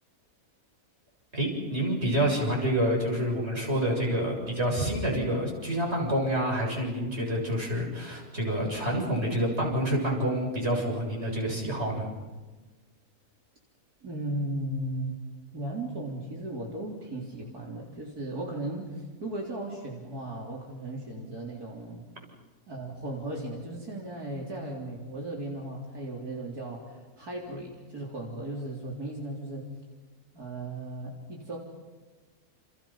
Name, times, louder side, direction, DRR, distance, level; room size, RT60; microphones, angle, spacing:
voice 1, 1.3-12.1, equal, 45° right, -1 dB, 7.4 m, -28 dB
voice 2, 14.0-15.2 15.5-22.1 22.7-29.7 30.3-31.6, right 1 dB, 75° right, -2 dB, 4.2 m, -36 dB
29.5 x 29.5 x 5.9 m, 1.3 s
omnidirectional pair, 1.6 m